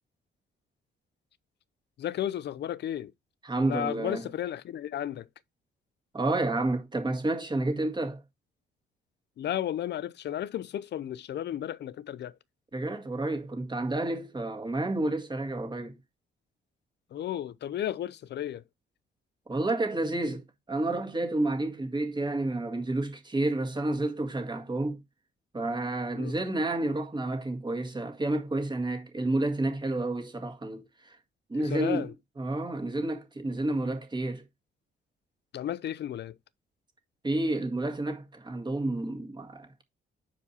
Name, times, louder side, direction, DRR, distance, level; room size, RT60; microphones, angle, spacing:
voice 1, 2.0-3.1 3.5-5.3 9.4-12.3 17.1-18.6 26.1-26.4 31.5-32.1 35.5-36.4, left 11 dB, 60° left, 0.6 m, -33 dB
voice 2, 3.4-4.3 6.1-8.2 12.7-16.0 19.5-25.0 25.5-31.2 31.5-32.1 32.4-34.4 37.2-39.8, right 2 dB, 20° right, 1.8 m, -30 dB
6.9 x 4.9 x 4.1 m
cardioid pair, 90°, 20 cm